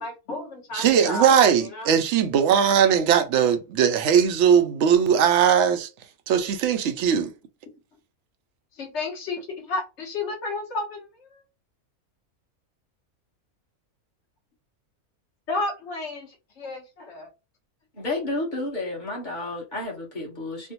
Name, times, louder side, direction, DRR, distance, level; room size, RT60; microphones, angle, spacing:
voice 1, 0.0-1.3 1.6-1.9 8.8-11.4 15.5-17.3, left 2 dB, 55° left, 1.2 m, -32 dB
voice 2, 0.7-5.9 6.3-7.3, right 8 dB, 65° right, 0.7 m, -19 dB
voice 3, 17.9-20.7, left 2 dB, 35° left, 1.3 m, -31 dB
3.3 x 2.1 x 2.9 m
omnidirectional pair, 1.5 m